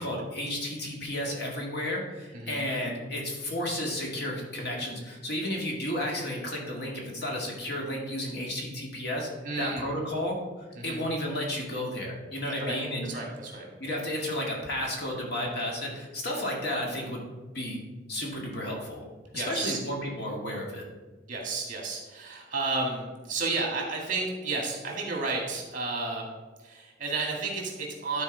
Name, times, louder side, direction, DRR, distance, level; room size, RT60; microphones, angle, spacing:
voice 1, 0.0-9.3 9.6-10.4 10.8-13.1 13.8-17.3 17.5-17.8 18.1-19.0 19.3-20.8, left 1 dB, 55° left, -1 dB, 1.9 m, -32 dB
voice 2, 2.3-2.6 9.4-9.9 10.7-11.0 12.5-13.9 19.3-19.8 21.3-26.3 26.6-28.2, right 3 dB, 45° right, -1 dB, 2.1 m, -32 dB
12.5 x 4.4 x 4.0 m, 1.3 s
head